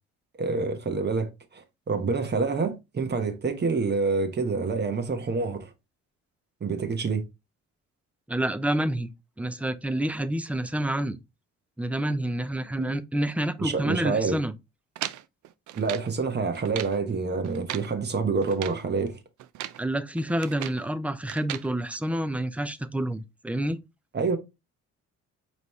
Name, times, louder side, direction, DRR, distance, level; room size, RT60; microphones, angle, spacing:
voice 1, 0.4-5.7 6.6-7.2 12.8-12.9 13.6-14.3 15.7-19.2 24.1-24.4, right 4 dB, 35° right, 1.1 m, -27 dB
voice 2, 8.3-9.1 9.4-11.2 11.8-14.5 19.8-23.8, right 1 dB, 5° right, 0.4 m, -28 dB
sound 1, 15.0-16.1 16.5-17.0 17.4-17.9 18.4-18.8 19.4-19.8 20.2-20.9 21.3-21.7, right 13 dB, 75° right, 0.5 m, -37 dB
5.0 x 3.2 x 3.1 m
cardioid pair, 90°, 30 cm